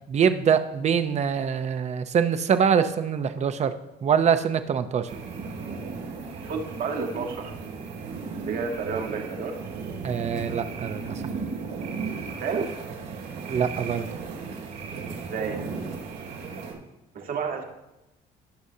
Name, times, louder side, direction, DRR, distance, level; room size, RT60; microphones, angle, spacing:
voice 1, 0.1-3.7 4.0-5.1 10.0-11.2 13.5-14.1, right 7 dB, 40° right, 10 dB, 0.7 m, -24 dB
sound 1, 5.1-16.7, right 4 dB, 85° right, 2.3 m, -35 dB
voice 2, 6.3-7.5 8.5-9.6 12.4-12.7 15.3-15.6 17.1-17.6, right 5 dB, 60° right, 3 dB, 1.7 m, -30 dB
18.5 x 6.4 x 2.8 m, 0.98 s
cardioid pair, 110°, 17 cm